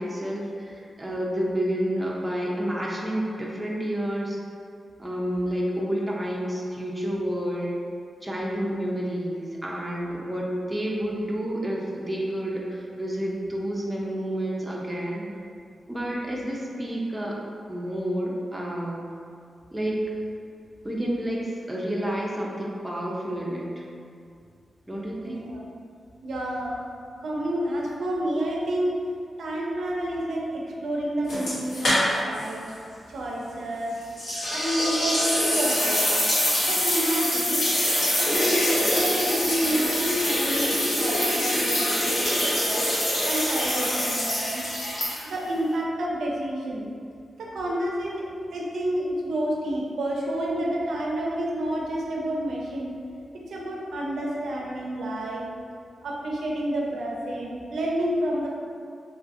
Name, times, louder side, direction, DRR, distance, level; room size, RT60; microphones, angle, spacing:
voice 1, 0.0-4.4 5.0-7.8 8.2-15.3 15.9-17.4 17.7-19.0 19.7-20.1 20.8-23.7 24.9-25.4 38.6-38.8, equal, 10° right, -4 dB, 0.4 m, -29 dB
voice 2, 25.2-25.6 26.2-26.8 27.2-29.0 29.4-32.7 33.1-33.9 34.5-36.2 36.7-37.7 38.2-42.9 43.3-44.6 45.2-46.9 47.4-48.3 48.5-52.9 53.3-55.5 56.0-58.5, right 1 dB, 85° right, -3 dB, 0.4 m, -29 dB
sound 1, 31.3-32.4 32.7-32.8 34.2-45.5, equal, 75° left, 1.0 m, -25 dB
2.7 x 2.4 x 2.5 m, 2.4 s
wide cardioid pair, 125°, 0 cm